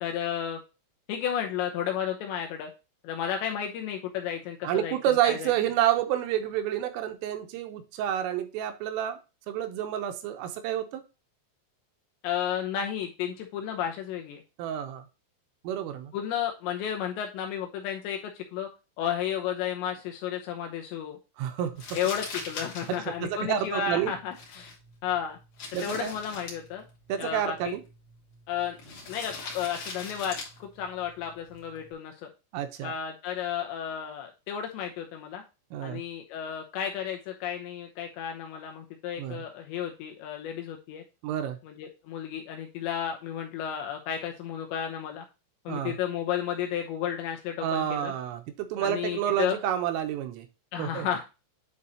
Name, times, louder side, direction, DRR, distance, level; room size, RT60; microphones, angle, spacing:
voice 1, 0.0-0.6 1.1-2.7 3.0-5.5 12.2-14.4 16.1-18.7 19.0-21.2 21.9-24.7 25.0-25.4 25.8-26.8 27.2-27.7 28.5-28.8 29.1-32.3 32.8-35.4 35.8-41.0 41.6-45.2 45.7-48.1 48.8-49.6 50.7-51.2, left 9 dB, 80° left, 2.7 m, -32 dB
voice 2, 4.6-9.2 9.5-11.0 14.6-15.0 15.7-16.1 21.4-21.8 23.2-24.1 25.7-26.1 27.1-27.8 32.5-32.9 35.7-36.0 39.2-39.4 41.2-41.6 45.7-46.0 47.6-50.5 50.8-51.1, right 11 dB, 85° right, 3.4 m, -29 dB
Crumpling crinkling, 21.8-31.9, left 3 dB, 45° left, 3.1 m, -43 dB
9.6 x 4.7 x 2.8 m
omnidirectional pair, 5.9 m